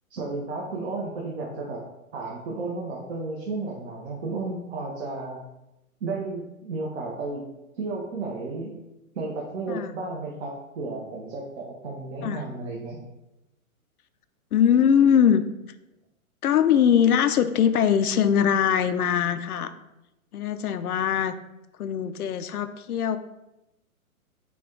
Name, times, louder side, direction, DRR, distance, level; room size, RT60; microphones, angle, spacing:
voice 1, 0.1-1.8 2.1-5.4 6.0-7.4 7.8-8.7 9.1-13.0, right 3 dB, 45° right, -3 dB, 0.9 m, -33 dB
voice 2, 14.5-15.4 16.4-19.7 20.3-21.3 21.8-23.2, left 8 dB, 90° left, 11 dB, 0.5 m, -21 dB
5.9 x 2.3 x 3.8 m, 0.94 s
hypercardioid pair, 140°, 43 cm